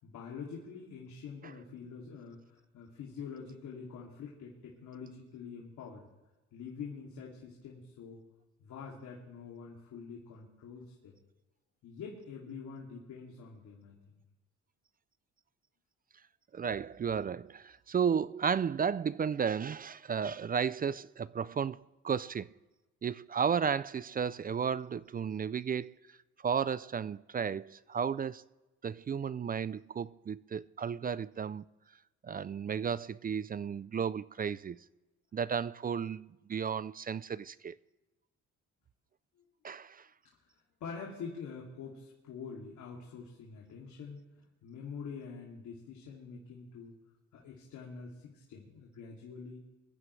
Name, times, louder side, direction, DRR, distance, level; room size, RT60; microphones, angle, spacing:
voice 1, 0.0-6.0 6.5-8.2 8.6-11.1 11.8-13.9 40.8-44.2 44.6-47.0 47.3-49.6, left 5 dB, 80° left, 2.8 m, -46 dB
voice 2, 16.5-22.5 23.0-25.9 26.4-28.4 28.8-31.6 32.2-34.8 35.3-37.7 39.6-40.1, right 7 dB, 30° right, 0.4 m, -33 dB
23.0 x 15.0 x 3.3 m
cardioid pair, 90°, 30 cm